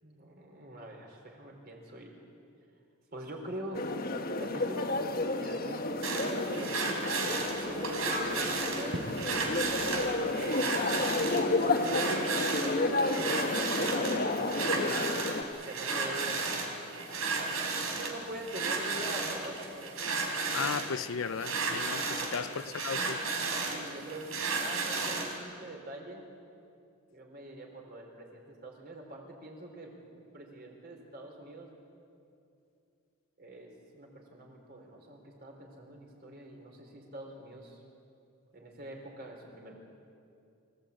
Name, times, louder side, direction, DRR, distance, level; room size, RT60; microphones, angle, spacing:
voice 1, 0.0-2.2 3.1-4.1 4.4-5.0 5.3-7.2 7.6-10.6 11.6-15.1 15.6-16.6 18.0-20.4 22.5-22.8 23.7-26.2 27.1-31.7 33.4-37.8 38.5-39.7, right 1 dB, 45° right, 4.4 m, -44 dB
sound 1, 3.7-15.4, left 2 dB, 45° left, 1.4 m, -31 dB
sound 2, 6.0-25.4, right 4 dB, 85° right, 4.0 m, -34 dB
voice 2, 20.5-23.2, left 6 dB, 65° left, 0.5 m, -35 dB
25.5 x 16.0 x 8.7 m
head